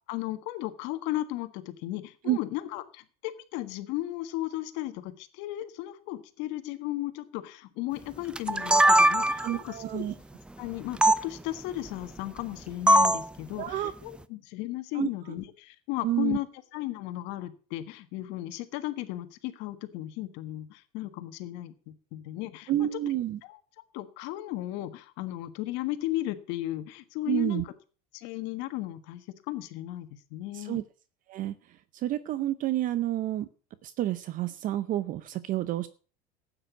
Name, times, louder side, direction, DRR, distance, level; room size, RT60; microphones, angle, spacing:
voice 1, 0.1-10.0 10.6-16.5 16.7-22.9 23.4-23.6 23.9-27.7 28.1-30.8, left 16 dB, 70° left, 10 dB, 1.6 m, -35 dB
sound 1, 8.4-9.6 11.0-11.2 12.9-13.3, right 1 dB, 5° right, 0.5 m, -20 dB
voice 2, 9.3-10.1 13.6-13.9 14.9-15.1 16.0-16.4 22.7-23.4 27.3-27.6 30.5-30.8 31.3-31.5 31.9-33.5 33.8-35.9, right 13 dB, 45° right, 15 dB, 0.7 m, -29 dB
12.5 x 8.9 x 6.0 m, 0.39 s
supercardioid pair, 130°, 19 cm